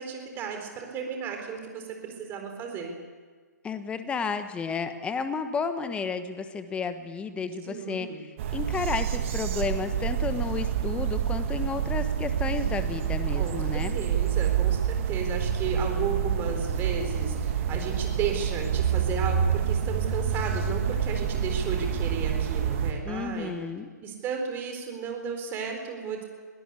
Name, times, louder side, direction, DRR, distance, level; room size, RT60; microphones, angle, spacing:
voice 1, 0.0-2.9 7.6-8.2 13.3-23.5 24.0-26.2, right 5 dB, 20° right, 4 dB, 4.3 m, -34 dB
voice 2, 3.6-8.1 8.5-13.9 23.0-23.9, left 5 dB, 10° left, 10 dB, 1.3 m, -32 dB
sound 1, 8.4-22.9, right 8 dB, 45° right, 2.4 m, -27 dB
22.0 x 18.0 x 8.4 m, 1.5 s
figure-of-eight pair, 135°, 10 cm